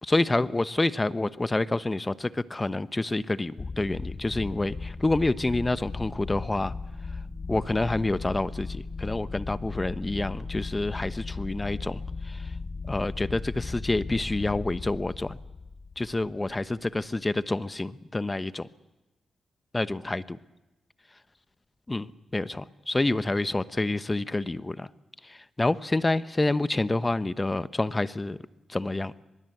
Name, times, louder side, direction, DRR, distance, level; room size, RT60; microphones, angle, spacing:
voice 1, 0.0-6.7 7.1-7.2 7.5-12.6 12.9-15.4 16.0-18.7 19.7-20.4 21.9-24.9 25.2-28.4 28.7-29.1, left 2 dB, 25° left, 14 dB, 0.9 m, -28 dB
sound 1, 3.6-16.9, left 4 dB, 45° left, 1.6 m, -37 dB
24.0 x 22.0 x 7.9 m, 1.0 s
supercardioid pair, 55°, 0 cm